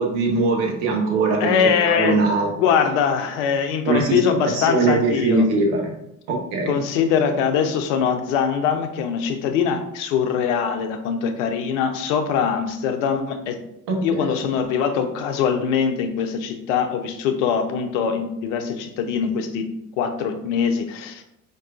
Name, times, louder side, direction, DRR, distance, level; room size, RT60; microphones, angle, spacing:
voice 1, 0.0-1.5 1.8-2.5 3.9-4.2 4.5-5.9 6.3-6.7 13.9-14.3, right 3 dB, 55° right, 0 dB, 0.9 m, -21 dB
voice 2, 1.4-5.5 6.7-13.6 14.0-19.6 20.0-21.2, left 7 dB, 60° left, 6 dB, 0.5 m, -22 dB
4.5 x 2.3 x 2.4 m, 0.81 s
figure-of-eight pair, 55°, 42 cm